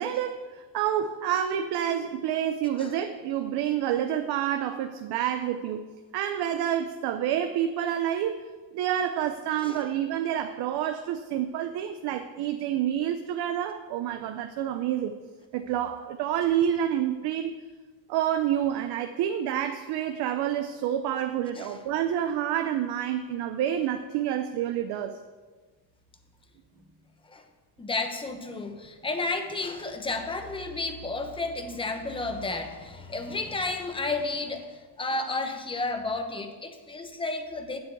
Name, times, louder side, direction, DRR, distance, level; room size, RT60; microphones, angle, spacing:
voice 1, 0.0-5.9 6.1-8.4 8.7-15.2 15.5-17.5 18.1-25.2, right 10 dB, 55° right, 7 dB, 0.7 m, -28 dB
voice 2, 9.6-9.9 21.5-21.8 27.2-27.4 27.8-37.8, left 3 dB, 10° left, 6 dB, 0.8 m, -32 dB
9.3 x 7.8 x 8.0 m, 1.4 s
cardioid pair, 175°, 48 cm